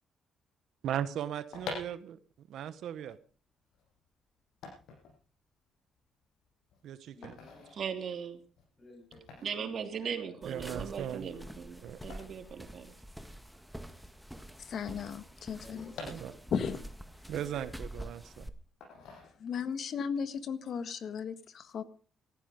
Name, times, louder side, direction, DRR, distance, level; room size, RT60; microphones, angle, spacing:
voice 1, 0.8-2.2 2.5-3.2 6.8-7.3 10.4-11.3 11.8-12.0 16.0-16.3 17.3-18.5, right 10 dB, 75° right, 14 dB, 1.1 m, -38 dB
sound 1, 1.4-13.4 13.7-13.8 13.9-16.8 17.2-18.2 18.8-19.8 20.1-20.4, left 4 dB, 80° left, 7.5 m, -48 dB
voice 2, 7.1-7.7 8.8-10.6 15.6-16.3, left 2 dB, 25° left, 1 dB, 6.8 m, -55 dB
voice 3, 7.7-8.4 9.4-12.9, right 7 dB, 55° right, 7 dB, 3.1 m, -38 dB
sound 2, 10.4-18.5, equal, ahead, 1.7 m, -47 dB
voice 4, 14.6-15.9 16.5-16.8 19.4-21.8, left 6 dB, 60° left, 12 dB, 1.7 m, -35 dB
18.0 x 14.5 x 5.2 m, 0.41 s
cardioid pair, 90°, 0 cm